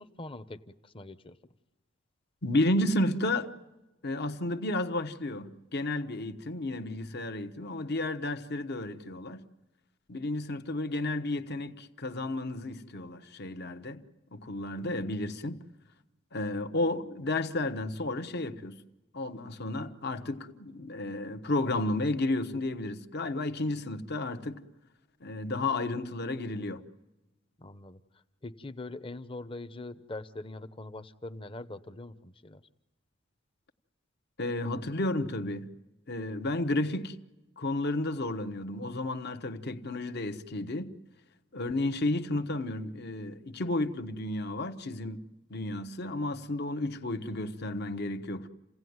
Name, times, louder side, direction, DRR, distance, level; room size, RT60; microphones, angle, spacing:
voice 1, 0.0-1.4 27.6-28.0 28.4-32.6, left 2 dB, 25° left, 0.9 m, -43 dB
voice 2, 2.4-3.5 4.0-9.4 10.1-14.0 14.3-15.6 16.3-18.8 19.1-24.6 25.2-26.8 34.4-35.7 36.1-37.2 37.6-40.9 41.5-48.5, left 2 dB, 50° left, 1.1 m, -32 dB
29.0 x 16.5 x 9.5 m
head